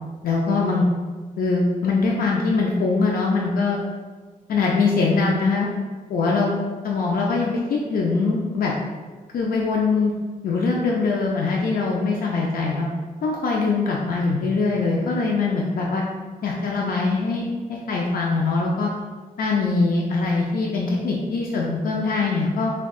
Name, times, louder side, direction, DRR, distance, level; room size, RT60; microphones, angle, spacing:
voice 1, 0.2-0.8 1.4-3.8 4.5-5.7 6.1-6.6 6.8-8.7 9.3-10.1 10.4-12.9 13.2-16.0 16.4-17.4 17.7-18.9 19.4-22.7, left 4 dB, 85° left, -2 dB, 0.4 m, -22 dB
6.0 x 2.3 x 2.3 m, 1.4 s
wide cardioid pair, 110°, 15 cm